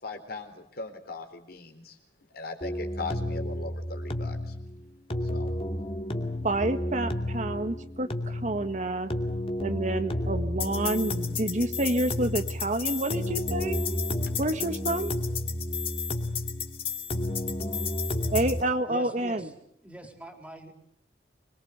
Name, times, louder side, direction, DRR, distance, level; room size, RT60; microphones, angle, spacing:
voice 1, 0.0-2.0 2.3-4.5 5.2-5.5, left 3 dB, 60° left, 6 dB, 4.1 m, -39 dB
sound 1, 2.6-18.6, left 2 dB, 35° left, 2.6 m, -31 dB
voice 2, 6.4-9.1 9.6-13.8 14.4-15.1 18.3-19.5, right 1 dB, 45° right, 9 dB, 1.5 m, -28 dB
voice 3, 18.9-20.7, right 1 dB, 10° right, 5 dB, 3.9 m, -44 dB
25.5 x 22.5 x 8.1 m, 0.73 s
head